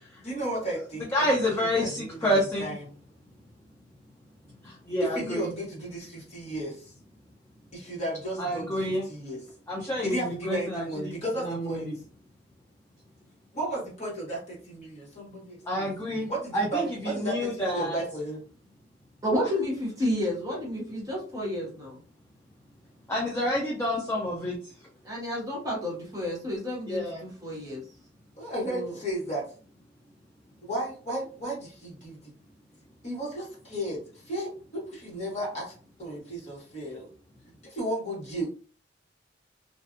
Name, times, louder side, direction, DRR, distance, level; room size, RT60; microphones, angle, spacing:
voice 1, 0.2-2.9 5.0-6.9 7.7-9.4 10.0-11.9 13.5-18.4 28.4-29.4 30.6-32.3 33.0-35.7 36.0-37.1 37.6-38.5, right 1 dB, 35° left, -5 dB, 1.3 m, -34 dB
voice 2, 1.1-2.7 4.6-5.5 8.4-9.0 9.7-11.2 11.5-11.9 15.7-18.0 23.1-24.6 26.9-27.2, equal, 15° left, -3 dB, 0.5 m, -28 dB
voice 3, 19.2-22.0 25.0-27.9 28.7-28.9, equal, 20° right, -4 dB, 0.9 m, -31 dB
2.6 x 2.3 x 2.5 m, 0.39 s
head